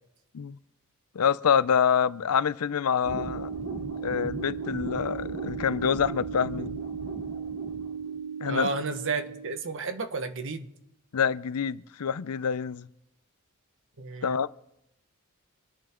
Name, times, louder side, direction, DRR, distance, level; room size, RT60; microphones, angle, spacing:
voice 1, 1.1-3.5 4.0-6.8 8.4-8.7 11.1-12.9 14.2-14.5, left 7 dB, 85° left, 0.5 m, -26 dB
sound 1, 3.0-9.6, right 5 dB, 85° right, 2.7 m, -35 dB
voice 2, 8.4-10.7 14.0-14.4, right 3 dB, 60° right, 1.3 m, -32 dB
26.5 x 10.5 x 3.7 m
head